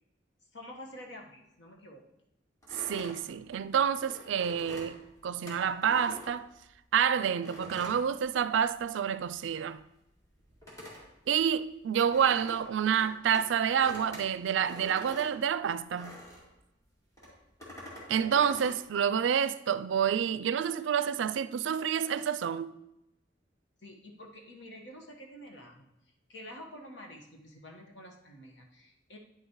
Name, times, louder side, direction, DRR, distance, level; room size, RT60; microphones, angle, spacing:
voice 1, 0.5-2.0 23.8-25.9 26.3-29.2, equal, 70° left, 1.3 m, -48 dB
sound 1, 2.6-6.9 7.4-8.9 9.2-16.6 17.1-18.8, equal, 20° left, 2.3 m, -47 dB
voice 2, 2.9-6.5 6.9-9.8 11.3-16.2 18.1-22.8, right 8 dB, 75° right, 0.4 m, -28 dB
9.8 x 6.5 x 3.0 m
head